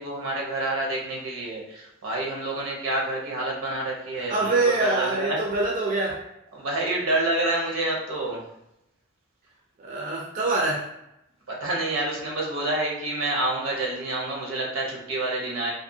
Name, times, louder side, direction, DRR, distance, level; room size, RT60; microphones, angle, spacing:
voice 1, 0.0-4.5 4.8-5.4 6.5-8.4 11.5-15.7, right 2 dB, 80° right, -2 dB, 0.8 m, -28 dB
voice 2, 4.1-6.2 9.8-10.9, right 2 dB, 40° right, -2 dB, 0.4 m, -25 dB
2.6 x 2.5 x 2.6 m, 0.85 s
head